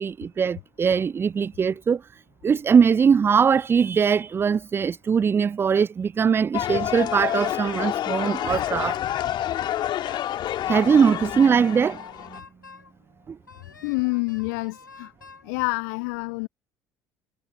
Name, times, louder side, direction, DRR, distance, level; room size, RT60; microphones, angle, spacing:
voice 1, 0.0-9.0 10.7-12.0 13.3-13.4, right 6 dB, 20° right, 0.3 m, -21 dB
sound 1, 6.5-12.4, left 12 dB, 45° left, 1.9 m, -28 dB
Wind instrument woodwind instrument, 8.3-10.3 10.9-12.9 13.5-15.5, left 4 dB, 85° left, 7.8 m, -47 dB
voice 2, 13.8-15.1 15.4-16.5, left 32 dB, 65° left, 0.8 m, -27 dB
figure-of-eight pair, 55°, 10 cm